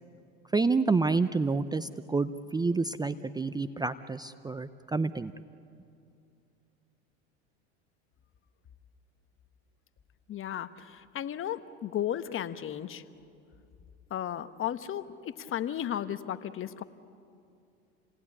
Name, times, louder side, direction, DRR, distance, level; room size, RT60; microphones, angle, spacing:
voice 1, 0.5-5.3, right 3 dB, 10° right, 13 dB, 0.6 m, -28 dB
voice 2, 10.3-13.0 14.1-16.8, left 10 dB, 40° left, 11 dB, 1.2 m, -34 dB
28.0 x 18.5 x 9.9 m, 2.5 s
supercardioid pair, 95°, 33 cm